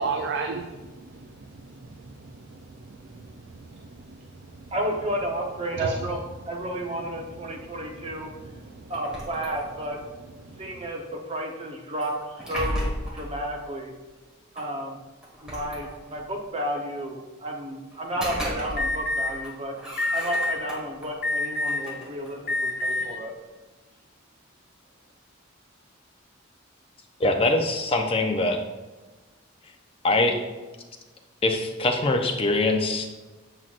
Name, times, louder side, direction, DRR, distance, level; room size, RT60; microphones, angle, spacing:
voice 1, 0.0-4.6 5.7-6.1 7.7-7.8 8.3-8.9 10.4-10.9, right 4 dB, 55° right, 5 dB, 0.4 m, -36 dB
voice 2, 4.7-6.2 6.5-8.3 8.9-10.0 10.6-13.9 14.5-15.0 15.4-19.7 20.1-23.3, right 1 dB, 30° right, 1 dB, 0.9 m, -32 dB
sound 1, 8.9-10.0 12.0-13.3 14.6-14.7 15.2-16.3 17.9-19.1 19.4-21.1 21.6-23.2, equal, 5° right, 1.5 m, -35 dB
Alarm, 18.8-19.3 20.0-20.5 21.2-21.9 22.4-23.0, left 2 dB, 50° left, 1.4 m, -26 dB
voice 3, 27.2-28.6 30.0-30.4 31.4-33.1, left 2 dB, 30° left, 3 dB, 0.6 m, -23 dB
7.5 x 5.7 x 2.5 m, 1.2 s
head